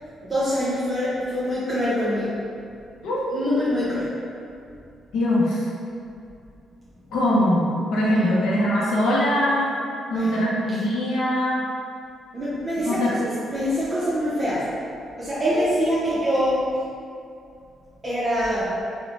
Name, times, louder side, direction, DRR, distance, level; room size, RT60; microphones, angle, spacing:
voice 1, 0.2-2.3 3.3-4.1 8.1-8.3 10.1-10.3 12.3-14.7 15.2-16.7 18.0-18.7, equal, 30° right, -10 dB, 0.5 m, -24 dB
voice 2, 3.0-3.6 5.1-5.7 7.1-9.8 10.1-11.6 12.8-13.2 15.5-15.6, left 1 dB, 85° left, -6 dB, 0.5 m, -22 dB
2.9 x 2.0 x 2.7 m, 2.4 s
cardioid pair, 105°, 0 cm